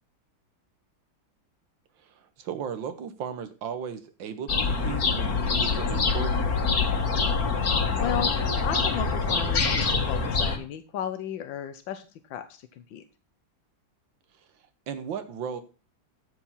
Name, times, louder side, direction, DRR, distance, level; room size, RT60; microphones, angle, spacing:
voice 1, 2.0-6.3 14.9-15.6, right 7 dB, 85° right, 9 dB, 1.8 m, -36 dB
sound 1, 4.5-10.6, left 4 dB, 55° left, 2.0 m, -25 dB
voice 2, 7.9-8.3 8.6-13.0, left 9 dB, 80° left, 9 dB, 1.7 m, -34 dB
14.0 x 4.8 x 5.5 m, 0.34 s
omnidirectional pair, 2.0 m